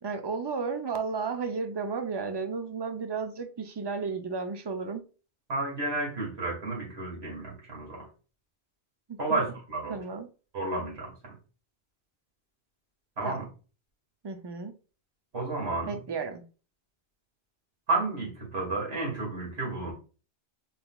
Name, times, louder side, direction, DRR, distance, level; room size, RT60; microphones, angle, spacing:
voice 1, 0.0-5.0 9.1-9.4 9.9-10.3 13.2-13.4 14.2-14.8 15.9-16.4, right 5 dB, 40° right, 0.4 m, -33 dB
voice 2, 5.5-8.1 9.2-10.0 10.5-11.4 13.2-13.4 15.3-16.0 17.9-19.9, right 2 dB, 85° right, 2.3 m, -31 dB
5.2 x 3.9 x 2.3 m
omnidirectional pair, 1.1 m